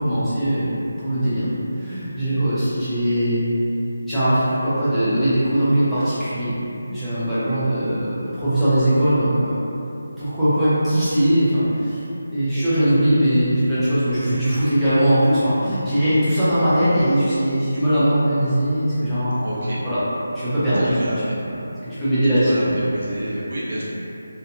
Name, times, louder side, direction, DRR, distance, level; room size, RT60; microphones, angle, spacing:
voice 1, 0.0-1.4 1.8-3.4 4.1-6.6 6.9-9.6 10.2-12.0 12.3-19.5 19.8-20.0 20.3-21.0 21.5-21.6 21.8-22.8, right 1 dB, ahead, -18 dB, 0.4 m, -20 dB
voice 2, 19.4-19.8 20.9-21.4 22.4-23.8, right 1 dB, 45° right, -8 dB, 0.6 m, -29 dB
2.7 x 2.2 x 2.5 m, 2.9 s
figure-of-eight pair, 180°, 0 cm